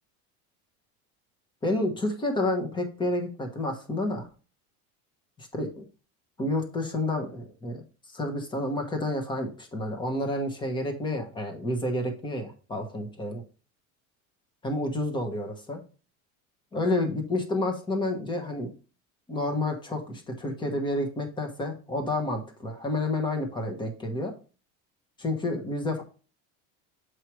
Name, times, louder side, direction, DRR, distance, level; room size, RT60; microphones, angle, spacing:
voice 1, 1.6-4.3 5.4-5.8 6.4-7.8 8.1-13.4 14.6-15.8 16.7-18.7 19.3-24.3 25.2-26.0, left 2 dB, 10° left, 4 dB, 1.1 m, -29 dB
7.5 x 4.8 x 3.0 m, 0.35 s
cardioid pair, 175°, 37 cm